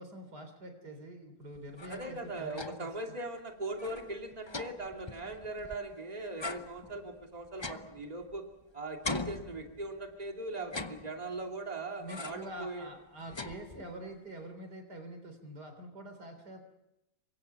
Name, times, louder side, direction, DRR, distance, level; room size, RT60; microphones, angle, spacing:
voice 1, 0.0-2.9 10.5-10.8 12.0-16.6, right 1 dB, 85° right, 7 dB, 4.3 m, -45 dB
sound 1, 1.5-3.0 3.3-3.4 3.7-5.9 6.4-8.6 9.0-10.1 10.6-11.5 12.1-12.6 12.9-14.1, left 3 dB, 25° left, 0.6 m, -42 dB
voice 2, 1.9-8.5 8.7-12.9, right 2 dB, 25° right, 2 dB, 2.7 m, -40 dB
28.5 x 24.5 x 5.9 m, 0.93 s
omnidirectional pair, 1.7 m